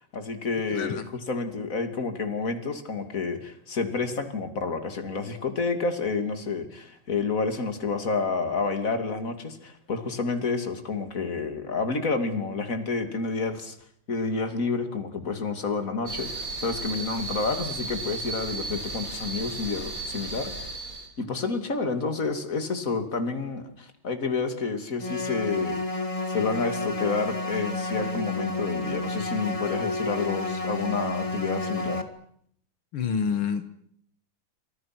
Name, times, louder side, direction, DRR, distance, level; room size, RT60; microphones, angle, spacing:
voice 1, 0.0-13.8 14.1-20.5 21.2-25.8 26.3-32.0, left 4 dB, 40° left, 8 dB, 3.2 m, -29 dB
voice 2, 0.7-1.1 32.9-33.6, left 6 dB, 80° left, 11 dB, 2.3 m, -28 dB
sound 1, 16.1-21.1, right 3 dB, 40° right, 5.4 m, -35 dB
sound 2, 25.0-32.0, left 2 dB, 15° left, 2.0 m, -30 dB
28.5 x 26.5 x 6.2 m, 0.68 s
omnidirectional pair, 2.3 m